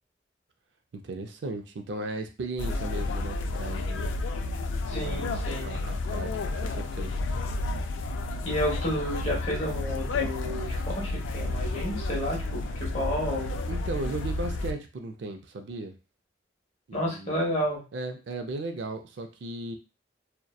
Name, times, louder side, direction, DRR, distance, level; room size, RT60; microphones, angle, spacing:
voice 1, 0.9-4.1 5.1-6.3 6.6-7.2 13.7-16.0 16.9-17.4 17.9-19.8, right 2 dB, 75° right, 6 dB, 0.4 m, -36 dB
sound 1, 2.6-14.7, left 2 dB, 90° left, 0.3 m, -31 dB
voice 2, 4.9-5.7 8.4-13.5 16.9-17.8, equal, 35° left, -3 dB, 0.9 m, -31 dB
2.6 x 2.1 x 2.3 m, 0.31 s
head